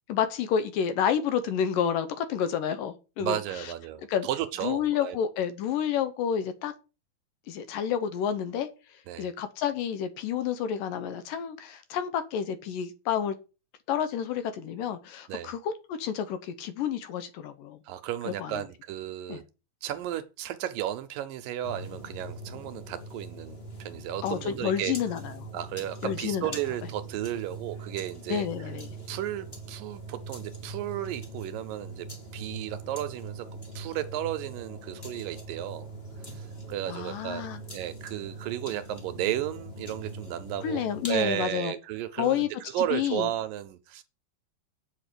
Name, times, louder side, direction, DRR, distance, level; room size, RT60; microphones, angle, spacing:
voice 1, 0.1-3.7 4.1-4.3 4.6-6.7 7.5-8.7 9.2-13.4 13.9-17.8 18.3-18.6 19.3-19.4 24.2-25.3 26.0-26.5 28.3-28.9 36.9-37.6 40.6-41.7 42.2-42.5 42.8-43.3, left 8 dB, 70° left, 2.5 m, -29 dB
voice 2, 3.2-5.2 9.1-9.3 15.3-15.5 17.9-19.4 19.8-24.9 25.5-28.5 29.1-32.1 32.3-33.5 33.8-35.9 36.2-42.4 42.7-44.0, right 12 dB, 75° right, 2.2 m, -34 dB
sound 1, 21.6-41.4, right 2 dB, 20° left, 1.8 m, -42 dB
8.5 x 5.8 x 6.7 m
omnidirectional pair, 4.3 m